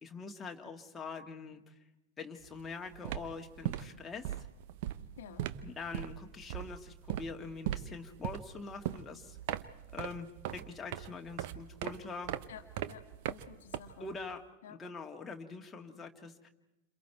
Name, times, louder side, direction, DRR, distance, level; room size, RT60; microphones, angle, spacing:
voice 1, 0.0-1.7 2.2-4.3 5.6-9.4 9.9-12.4 14.0-14.4 14.7-16.5, left 4 dB, 15° left, 2 dB, 1.9 m, -44 dB
sound 1, 2.4-2.7 2.9-14.3, right 13 dB, 50° right, 0.8 m, -40 dB
voice 2, 5.2-5.5 12.5-14.1 14.6-14.8, left 8 dB, 60° left, 8 dB, 1.3 m, -51 dB
29.0 x 27.0 x 4.5 m, 0.99 s
figure-of-eight pair, 90°, 0 cm